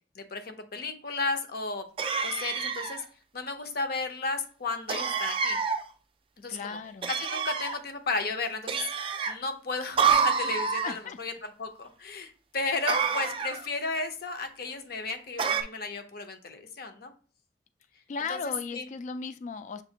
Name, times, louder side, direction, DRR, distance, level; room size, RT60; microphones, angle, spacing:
voice 1, 0.1-1.9 2.2-3.0 3.3-5.6 6.4-6.8 7.1-8.8 9.3-17.1 18.3-18.9, left 3 dB, 60° left, 7 dB, 0.7 m, -34 dB
sound 1, 2.0-3.0 4.9-5.8 7.0-7.8 8.7-9.3 10.0-10.9 12.9-13.7 15.4-15.6, right 6 dB, 30° right, 0.4 m, -27 dB
voice 2, 6.5-7.1 10.8-11.2 18.1-19.8, left 4 dB, 45° left, 12 dB, 0.3 m, -36 dB
6.8 x 2.5 x 2.8 m, 0.39 s
head